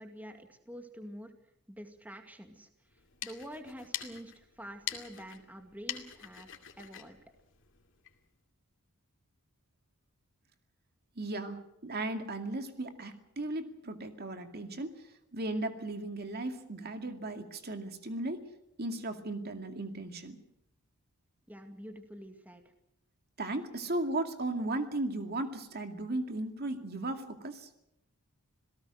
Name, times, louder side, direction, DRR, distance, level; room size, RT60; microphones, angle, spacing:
voice 1, 0.0-1.3 1.7-6.5 6.8-7.2 21.5-22.6, equal, 5° right, 5 dB, 2.0 m, -47 dB
sound 1, 2.9-8.2, left 10 dB, 60° left, 2.5 m, -44 dB
voice 2, 11.2-15.0 15.3-18.4 18.8-20.4 23.4-27.7, right 2 dB, 45° right, 6 dB, 2.3 m, -36 dB
27.5 x 18.0 x 6.4 m, 0.84 s
head